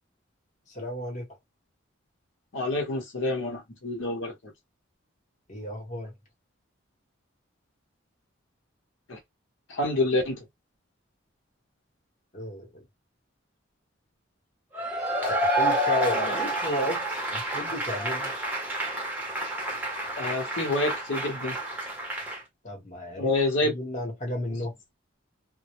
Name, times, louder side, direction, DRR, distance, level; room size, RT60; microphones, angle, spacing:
voice 1, 0.7-1.3 5.5-6.1 12.3-12.8 15.3-18.3 22.6-23.3 23.6-24.7, left 1 dB, 35° left, 0.9 m, -33 dB
voice 2, 2.5-4.3 9.1-9.2 9.7-10.4 16.3-16.4 20.2-21.6 23.2-23.7, left 2 dB, 75° left, 0.8 m, -27 dB
Cheering / Applause / Crowd, 14.7-22.4, right 1 dB, 10° right, 0.7 m, -29 dB
2.1 x 2.0 x 2.9 m
head